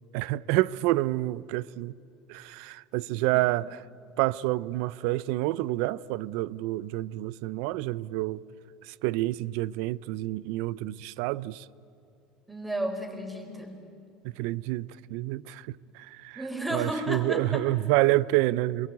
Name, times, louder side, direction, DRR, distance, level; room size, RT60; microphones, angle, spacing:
voice 1, 0.1-1.9 2.3-3.8 4.2-8.4 8.8-11.7 14.2-16.4 16.7-18.9, right 17 dB, 70° right, 0.6 m, -28 dB
voice 2, 12.5-13.8 16.4-17.6, right 1 dB, 5° right, 4.2 m, -32 dB
27.5 x 21.5 x 8.5 m
supercardioid pair, 135°, 0 cm